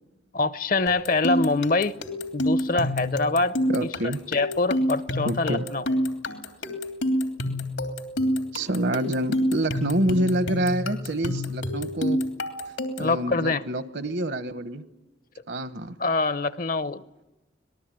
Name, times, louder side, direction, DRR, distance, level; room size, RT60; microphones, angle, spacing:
voice 1, 0.3-2.0 2.3-3.6 3.8-3.9 4.3-5.8 13.0-13.6 16.0-17.0, left 3 dB, 45° left, 0.8 m, -24 dB
sound 1, 0.9-13.2, left 1 dB, 90° left, 3.0 m, -28 dB
voice 2, 3.7-4.2 5.2-5.7 8.5-12.2 13.0-14.8 15.5-16.0, right 1 dB, 65° right, 1.3 m, -27 dB
26.0 x 20.0 x 9.2 m
head